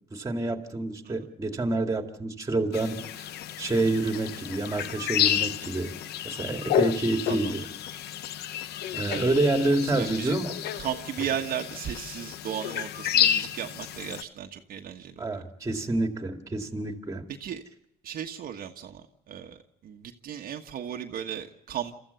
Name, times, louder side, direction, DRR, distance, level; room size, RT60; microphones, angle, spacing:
voice 1, 0.1-3.3 3.6-5.9 6.2-7.6 8.9-10.6 15.2-17.2, right 2 dB, 20° right, 5 dB, 2.3 m, -28 dB
sound 1, 2.7-14.2, left 11 dB, 75° left, 0.8 m, -30 dB
voice 2, 9.8-10.4 10.8-15.4 17.4-17.6 18.0-21.9, right 9 dB, 60° right, 3 dB, 1.4 m, -35 dB
28.0 x 14.0 x 8.2 m, 0.78 s
cardioid pair, 110°, 17 cm